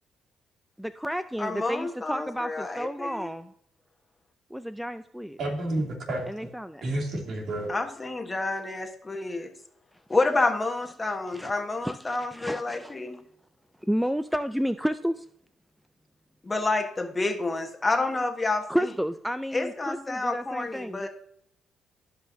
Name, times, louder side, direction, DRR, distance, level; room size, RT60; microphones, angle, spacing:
voice 1, 0.8-3.5 4.5-5.4 6.3-6.8 11.3-11.5 11.8-13.0 13.9-15.3 18.7-21.1, equal, ahead, 11 dB, 0.3 m, -31 dB
voice 2, 1.4-3.3 7.7-9.5 10.1-13.2 16.4-18.9 19.5-21.1, left 3 dB, 20° left, 4 dB, 1.2 m, -29 dB
voice 3, 5.4-6.5 6.8-7.7, right 1 dB, 65° right, 0 dB, 2.6 m, -30 dB
13.5 x 5.6 x 2.7 m, 0.68 s
cardioid pair, 90°, 0 cm